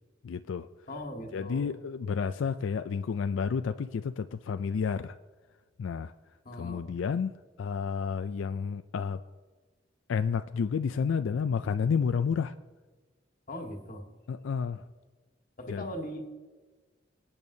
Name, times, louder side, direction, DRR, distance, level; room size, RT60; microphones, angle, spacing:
voice 1, 0.2-0.7 1.3-5.1 5.8-6.1 6.6-7.3 7.6-9.2 10.1-12.5 14.3-14.8 15.7-15.9, left 6 dB, 85° left, 10 dB, 0.4 m, -30 dB
voice 2, 0.9-1.7 6.5-6.9 13.5-14.0 15.6-16.3, equal, 45° left, 3 dB, 1.6 m, -39 dB
25.0 x 8.8 x 2.7 m, 1.3 s
head